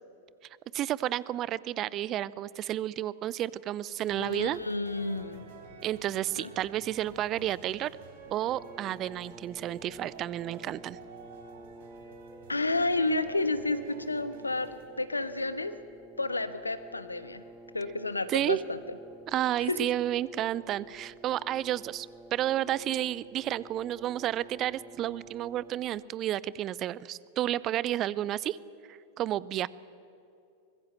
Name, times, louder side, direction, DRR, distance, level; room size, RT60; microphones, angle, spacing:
voice 1, 0.7-4.6 5.8-7.9 8.3-11.0 18.3-18.6 19.3-28.6 28.9-29.7, right 12 dB, 35° right, 21 dB, 0.6 m, -31 dB
voice 2, 4.1-5.5 6.4-6.5 12.5-14.7 15.0-15.7 16.2-17.4 17.7-18.8 19.6-19.8, left 2 dB, 80° left, 12 dB, 1.3 m, -31 dB
sound 1, 4.1-14.9, right 5 dB, 55° right, 3.7 m, -51 dB
Brass instrument, 8.2-26.0, right 1 dB, 10° right, 1.5 m, -51 dB
24.5 x 21.5 x 7.5 m, 2.6 s
figure-of-eight pair, 90°, 0 cm